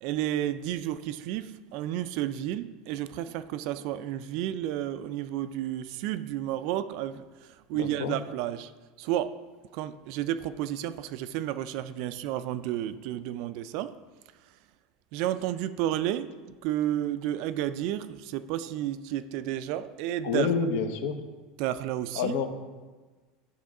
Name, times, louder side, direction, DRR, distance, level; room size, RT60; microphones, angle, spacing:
voice 1, 0.0-7.2 7.7-8.7 9.0-9.4 9.7-13.9 15.1-16.3 16.6-20.5 21.6-22.3, right 12 dB, 55° right, 13 dB, 0.3 m, -31 dB
voice 2, 7.7-8.2 20.2-21.2 22.1-22.5, left 6 dB, 70° left, 8 dB, 0.7 m, -28 dB
9.9 x 3.6 x 4.8 m, 1.3 s
supercardioid pair, 160°, 0 cm